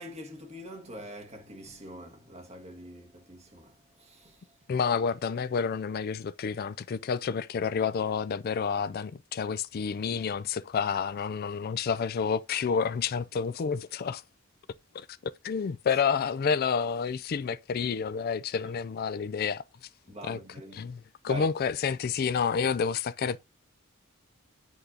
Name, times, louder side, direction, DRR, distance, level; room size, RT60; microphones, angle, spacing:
voice 1, 0.0-4.5 18.6-18.7 20.1-20.9 21.2-21.5, equal, 30° right, 1.5 m, -44 dB
voice 2, 4.7-14.2 14.9-19.6 20.2-20.4 20.7-23.4, left 6 dB, 45° left, 0.3 m, -29 dB
8.1 x 2.7 x 4.9 m
head